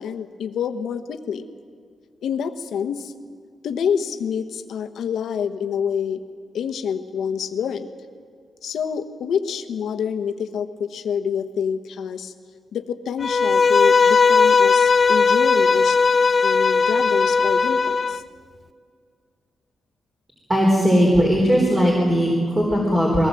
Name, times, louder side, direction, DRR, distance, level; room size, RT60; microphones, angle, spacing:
voice 1, 0.0-1.5 2.2-3.1 3.6-6.2 6.5-7.9 8.6-12.3 12.7-16.0 16.4-18.2, left 7 dB, 80° left, 9 dB, 1.2 m, -27 dB
Bowed string instrument, 13.2-18.2, left 5 dB, 30° left, 0.5 m, -17 dB
voice 2, 20.5-23.3, equal, 15° right, -2 dB, 3.8 m, -18 dB
22.0 x 18.5 x 7.7 m, 2.1 s
wide cardioid pair, 160°, 0 cm